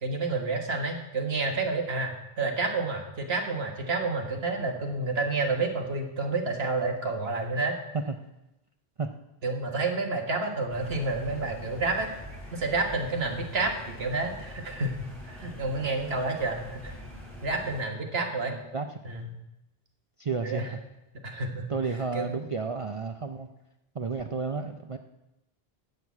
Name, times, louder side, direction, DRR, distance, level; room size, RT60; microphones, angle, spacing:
voice 1, 0.0-7.8 9.4-12.1 12.5-17.0 17.4-18.5 19.0-19.3 20.4-20.7 21.2-21.7 22.1-22.4, right 3 dB, 80° right, 3 dB, 1.8 m, -29 dB
sound 1, 10.7-17.8, equal, ahead, 3.7 m, -44 dB
voice 2, 18.5-18.9 20.2-20.8 21.7-23.5 23.9-25.0, right 4 dB, 40° right, 5 dB, 0.6 m, -32 dB
11.0 x 6.7 x 8.4 m, 0.94 s
omnidirectional pair, 1.0 m